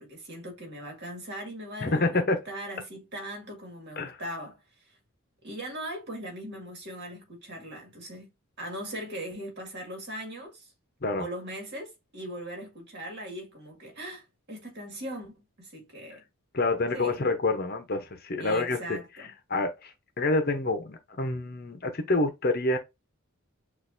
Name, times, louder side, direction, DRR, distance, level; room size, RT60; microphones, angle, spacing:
voice 1, 0.0-4.6 4.9-5.0 5.4-8.3 8.6-10.7 11.2-16.2 16.9-17.2 18.4-19.3, right 1 dB, 50° right, 1.9 m, -40 dB
voice 2, 1.8-2.4 4.0-4.1 11.0-11.2 16.5-19.0 19.5-19.9 20.2-22.8, left 2 dB, 45° left, 0.8 m, -27 dB
6.5 x 2.6 x 2.6 m
head